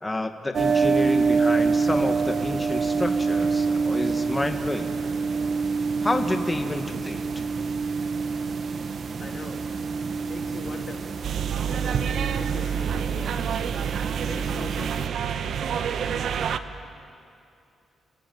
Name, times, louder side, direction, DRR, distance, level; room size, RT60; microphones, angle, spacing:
voice 1, 0.0-4.9 6.0-7.2, left 2 dB, 15° left, 6 dB, 1.7 m, -29 dB
sound 1, 0.5-15.1, right 4 dB, 55° right, 1.3 m, -26 dB
voice 2, 9.2-9.6 10.3-11.1 11.7-13.7 14.3-15.1, left 4 dB, 45° left, 4 dB, 2.5 m, -41 dB
sound 2, 11.2-16.6, right 8 dB, 70° right, 1.1 m, -28 dB
28.5 x 18.5 x 9.4 m, 2.5 s
cardioid pair, 85°, 0 cm